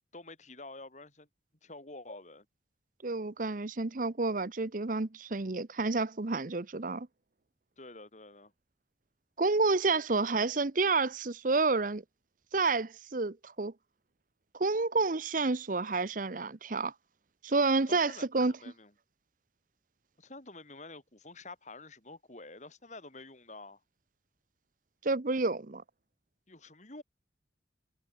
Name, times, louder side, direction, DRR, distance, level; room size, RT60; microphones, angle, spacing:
voice 1, 0.1-1.3 1.6-2.5 7.8-8.5 17.9-18.9 20.2-23.8 26.5-27.0, left 2 dB, 40° left, 4.4 m, -48 dB
voice 2, 3.0-7.1 9.4-12.0 12.5-13.7 14.5-16.9 17.4-18.5 25.0-25.8, right 3 dB, 45° right, 0.9 m, -29 dB
head